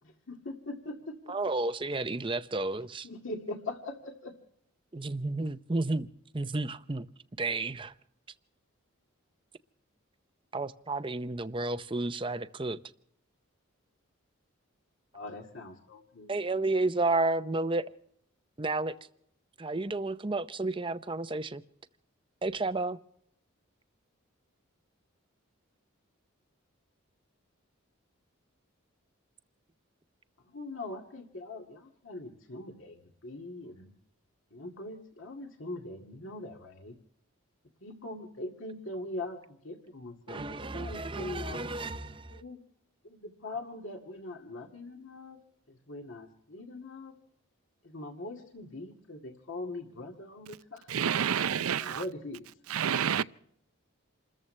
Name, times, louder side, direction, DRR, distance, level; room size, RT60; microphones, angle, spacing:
voice 1, 0.0-1.3 3.0-4.3 15.1-16.4 30.4-33.9 34.5-37.0 37.8-41.7 42.3-42.6 43.0-45.4 45.7-47.1 47.8-50.9 51.8-52.5, left 2 dB, 65° left, 2.1 m, -42 dB
voice 2, 1.3-3.1 4.9-6.1 6.3-7.1 7.4-7.9 10.5-12.8 16.3-17.9 18.6-18.9 19.6-21.6 22.4-23.0 40.3-42.4, right 2 dB, 25° right, 0.6 m, -31 dB
voice 3, 50.9-52.0 52.7-53.2, right 8 dB, 85° right, 0.6 m, -28 dB
28.5 x 14.0 x 3.3 m
head